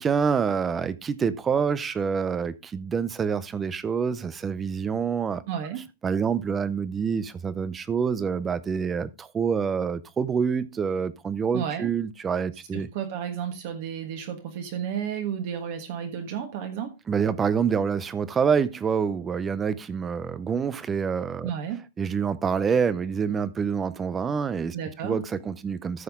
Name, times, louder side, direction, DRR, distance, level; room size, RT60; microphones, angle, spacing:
voice 1, 0.0-5.4 6.0-12.9 17.1-21.5 22.0-24.8 25.0-26.0, right 6 dB, 10° right, 0.5 m, -26 dB
voice 2, 5.5-5.8 11.5-11.9 12.7-16.9 21.4-21.8 24.7-25.2, right 8 dB, 35° right, 1.5 m, -32 dB
14.0 x 6.0 x 3.5 m
supercardioid pair, 175°, 0 cm